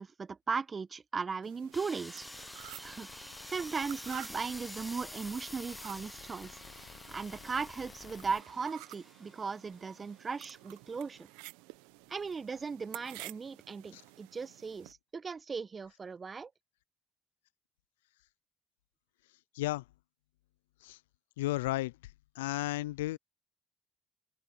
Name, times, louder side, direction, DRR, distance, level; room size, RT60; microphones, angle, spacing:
voice 1, 0.0-2.3 2.8-11.3 12.1-16.5, right 5 dB, 40° right, 1.2 m, -38 dB
sound 1, 1.4-14.9, right 24 dB, 80° right, 1.2 m, -52 dB
sound 2, 1.7-10.3, left 1 dB, 5° left, 0.9 m, -49 dB
sound 3, 2.2-8.4, left 8 dB, 55° left, 1.3 m, -53 dB
voice 2, 21.4-21.9 22.4-23.2, left 17 dB, 85° left, 0.5 m, -33 dB
open air
hypercardioid pair, 50°, 0 cm